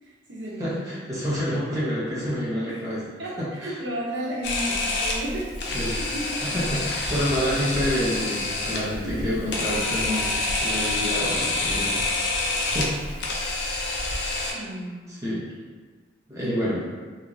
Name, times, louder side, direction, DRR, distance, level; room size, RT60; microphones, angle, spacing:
voice 1, 0.0-1.0 2.7-2.8 3.2-5.6 6.1-6.5 9.0-9.8 11.4-11.5 14.5-15.2 16.4-16.6, right 1 dB, 75° right, -5 dB, 0.6 m, -34 dB
voice 2, 0.6-3.1 3.4-3.8 5.7-6.0 6.4-12.1 12.6-13.0 15.2-15.5 16.3-16.8, equal, 15° right, -9 dB, 0.7 m, -28 dB
Camera, 4.4-14.5, left 2 dB, 65° left, 0.5 m, -27 dB
3.0 x 2.4 x 2.5 m, 1.4 s
head